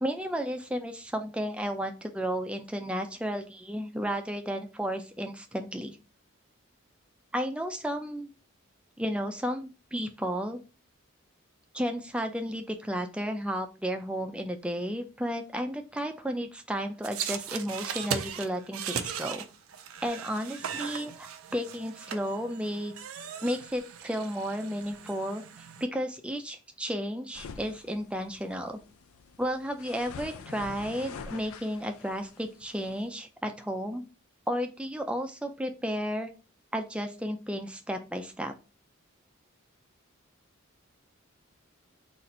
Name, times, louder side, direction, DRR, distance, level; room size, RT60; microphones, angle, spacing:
voice 1, 0.0-6.0 7.3-8.3 9.0-10.6 11.7-19.4 20.0-21.1 21.5-22.9 23.4-25.4 25.8-28.8 29.4-34.0 34.5-36.3 36.7-38.5, equal, 5° right, 5 dB, 0.4 m, -33 dB
sound 1, 17.0-25.9, right 8 dB, 85° right, 0.5 m, -38 dB
sound 2, 27.3-33.1, left 5 dB, 90° left, 0.4 m, -46 dB
4.1 x 2.5 x 4.1 m, 0.32 s
head